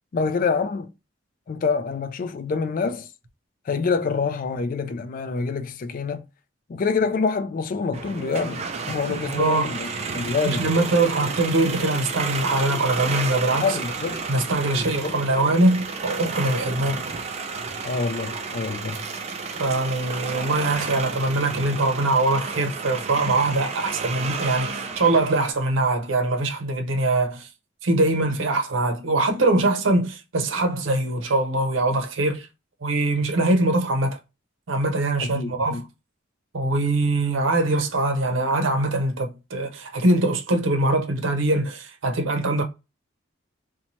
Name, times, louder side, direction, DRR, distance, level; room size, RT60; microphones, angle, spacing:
voice 1, 0.1-0.9 1.5-3.1 3.7-6.2 6.7-10.7 13.6-14.2 14.8-15.1 17.8-19.0 35.3-35.8, left 4 dB, 45° left, 0.3 m, -26 dB
sound 1, 7.9-25.5, right 4 dB, 35° right, 0.3 m, -31 dB
voice 2, 9.1-9.7 10.4-13.8 14.3-17.0 19.6-27.5 27.8-32.5 32.8-34.2 34.7-35.8 36.5-42.6, right 2 dB, 85° right, 0.6 m, -22 dB
2.7 x 2.2 x 2.9 m
head